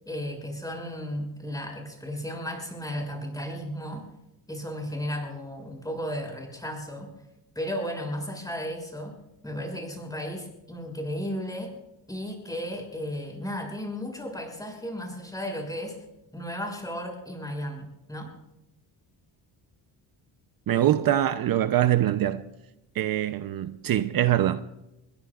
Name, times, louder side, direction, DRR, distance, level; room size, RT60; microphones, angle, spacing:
voice 1, 0.0-4.1 4.5-7.1 7.5-9.2 9.4-11.7 12.1-16.0 16.3-18.3, equal, 10° left, 6.4 m, -34 dB
voice 2, 20.7-22.5 22.9-24.6, right 12 dB, 55° right, 0.7 m, -23 dB
26.5 x 22.0 x 2.4 m
cardioid pair, 120°, 42 cm